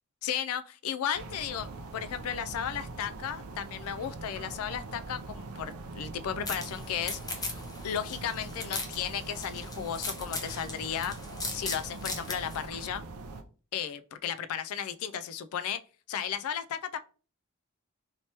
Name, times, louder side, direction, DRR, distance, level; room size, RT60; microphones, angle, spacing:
voice 1, 0.2-1.7 1.9-11.1 11.5-13.0 13.7-15.8 16.1-17.0, left 8 dB, 70° left, 0.3 m, -34 dB
sound 1, 1.1-13.4, right 3 dB, 75° right, 0.5 m, -43 dB
sound 2, 6.4-12.6, left 3 dB, 15° left, 0.6 m, -39 dB
3.2 x 2.9 x 2.8 m
head